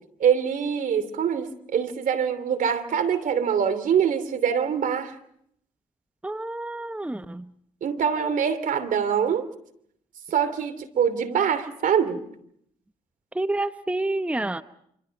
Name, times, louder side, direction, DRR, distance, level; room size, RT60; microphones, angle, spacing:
voice 1, 0.2-5.2 7.8-9.4 10.3-12.2, right 7 dB, 60° right, 11 dB, 2.8 m, -24 dB
voice 2, 6.2-7.5 13.3-14.6, right 2 dB, 10° right, 11 dB, 1.0 m, -28 dB
27.0 x 26.0 x 5.3 m, 0.70 s
hypercardioid pair, 55°, 15 cm